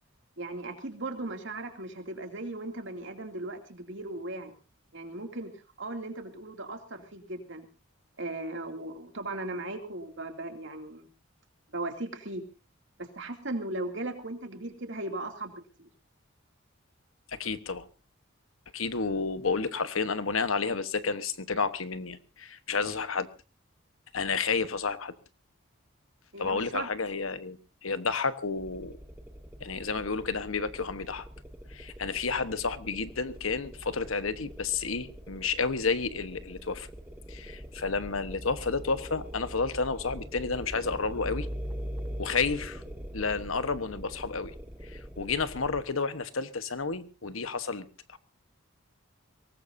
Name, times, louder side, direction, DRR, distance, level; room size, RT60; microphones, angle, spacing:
voice 1, 0.4-4.5 4.9-5.5 5.8-7.6 8.2-11.1 11.7-12.4 13.0-15.5 15.8-15.9 26.3-26.9, right 2 dB, 60° right, 5 dB, 2.7 m, -37 dB
voice 2, 17.3-17.9 18.7-23.3 24.1-25.1 26.4-29.0 29.6-31.3 31.7-36.9 37.3-41.5 42.2-42.8 43.1-44.5 44.8-48.2, left 4 dB, 80° left, 12 dB, 1.2 m, -31 dB
sound 1, 28.6-45.8, equal, 10° right, 1.3 m, -42 dB
23.0 x 18.5 x 2.7 m, 0.32 s
head